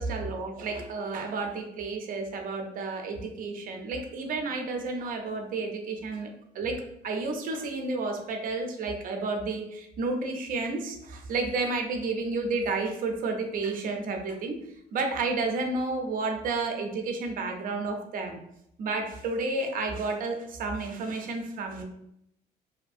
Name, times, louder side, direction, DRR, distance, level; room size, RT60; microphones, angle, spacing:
voice 1, 0.0-6.3 6.5-14.6 14.9-18.4 18.8-21.8, right 3 dB, 55° right, 4 dB, 0.5 m, -31 dB
2.6 x 2.6 x 2.4 m, 0.77 s
cardioid pair, 110°, 17 cm